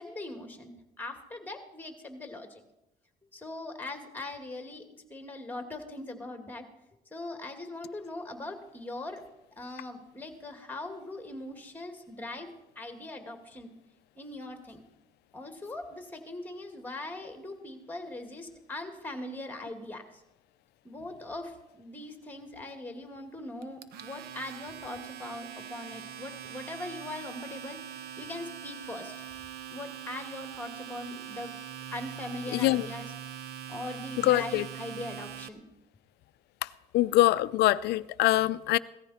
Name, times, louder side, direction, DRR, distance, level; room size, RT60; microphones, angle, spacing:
voice 1, 0.0-2.6 3.3-6.7 7.1-9.2 9.6-13.7 14.2-14.8 15.3-20.0 20.8-27.8 28.2-29.1 29.7-31.5 31.9-33.1 33.7-35.6, left 2 dB, 10° left, 2.1 m, -41 dB
Domestic sounds home sounds, 23.6-35.5, right 9 dB, 70° right, 0.9 m, -42 dB
voice 2, 32.5-32.9 34.2-34.7 36.6-36.7 36.9-38.8, left 15 dB, 75° left, 0.5 m, -24 dB
17.0 x 14.0 x 4.3 m
cardioid pair, 110°, 17 cm